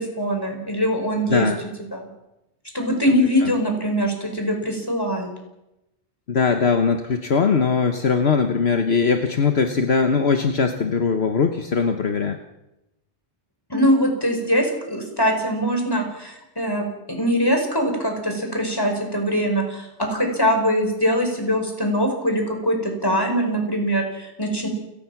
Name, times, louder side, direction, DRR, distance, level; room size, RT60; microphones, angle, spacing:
voice 1, 0.0-1.5 1.9-2.1 2.7-5.3 13.7-24.7, equal, 20° left, 3 dB, 5.5 m, -22 dB
voice 2, 1.3-1.6 3.4-3.5 6.3-12.4, left 5 dB, 65° left, 6 dB, 1.4 m, -20 dB
29.0 x 19.5 x 6.0 m, 0.92 s
omnidirectional pair, 1.2 m